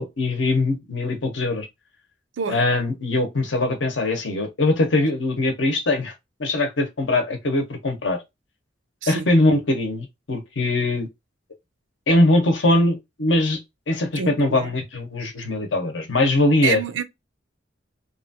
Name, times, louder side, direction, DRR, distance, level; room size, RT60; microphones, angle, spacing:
voice 1, 0.0-1.7 2.5-6.1 6.4-8.2 9.1-11.1 12.1-13.6 13.9-16.8, left 2 dB, 75° left, 0.9 m, -21 dB
voice 2, 14.2-14.7 16.6-17.0, right 7 dB, 85° right, 0.4 m, -27 dB
2.9 x 2.4 x 2.6 m
head